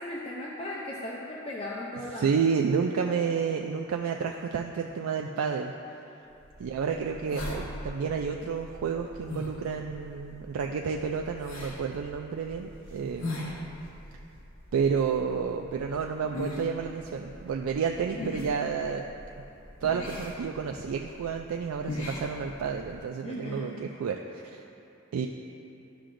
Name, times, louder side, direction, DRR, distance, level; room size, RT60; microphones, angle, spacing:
voice 1, 0.0-2.3 23.2-23.8, left 1 dB, 25° left, -5 dB, 0.5 m, -37 dB
voice 2, 2.2-5.7 6.6-13.7 14.7-19.0 19.8-24.6 25.1-25.3, right 6 dB, 80° right, 2 dB, 0.3 m, -30 dB
sound 1, 6.4-23.0, left 1 dB, 65° left, 1.1 m, -41 dB
11.5 x 5.7 x 2.5 m, 2.8 s
head